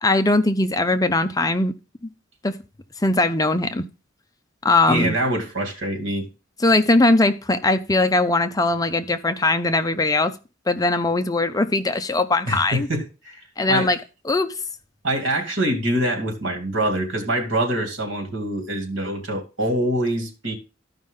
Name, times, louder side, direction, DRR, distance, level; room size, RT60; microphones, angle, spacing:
voice 1, 0.0-1.7 2.4-2.6 3.0-3.8 4.6-5.1 6.6-10.3 10.7-12.9 13.6-14.0 14.3-14.5, left 2 dB, 20° left, 0.6 m, -20 dB
voice 2, 4.9-6.3 12.4-13.9 14.4-14.5 15.0-20.5, right 1 dB, 70° right, 2.5 m, -25 dB
13.5 x 5.3 x 3.7 m
head